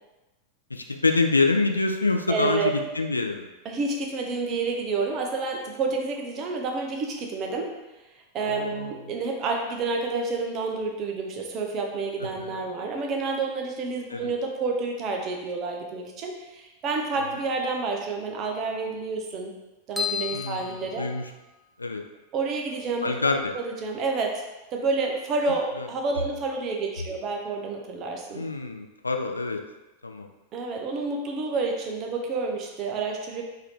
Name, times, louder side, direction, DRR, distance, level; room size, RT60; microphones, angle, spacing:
voice 1, 0.7-3.5 8.5-9.0 12.2-12.6 14.1-14.3 20.3-21.3 21.8-22.0 23.0-23.5 25.8-25.9 28.3-29.6 30.0-30.3, left 3 dB, 80° left, 4 dB, 0.3 m, -26 dB
voice 2, 2.3-2.7 3.6-7.7 8.3-19.5 19.9-21.1 22.3-23.3 23.5-24.4 24.7-28.4 30.5-33.4, right 3 dB, 35° right, 2 dB, 0.7 m, -29 dB
sound 1, 20.0-21.7, left 7 dB, 5° left, 0.5 m, -33 dB
3.9 x 2.8 x 3.3 m, 1.1 s
figure-of-eight pair, 90°, 0 cm